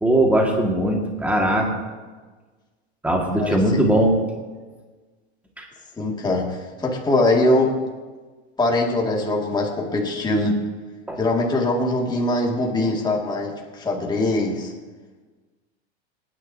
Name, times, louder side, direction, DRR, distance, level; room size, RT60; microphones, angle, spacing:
voice 1, 0.0-1.7 3.0-4.2 5.6-5.7 11.1-11.2, right 1 dB, 5° right, 0 dB, 1.8 m, -20 dB
voice 2, 6.0-7.7 8.6-10.6 11.2-14.7, left 2 dB, 15° left, -1 dB, 2.1 m, -22 dB
25.0 x 10.0 x 2.8 m, 1.3 s
supercardioid pair, 135°, 33 cm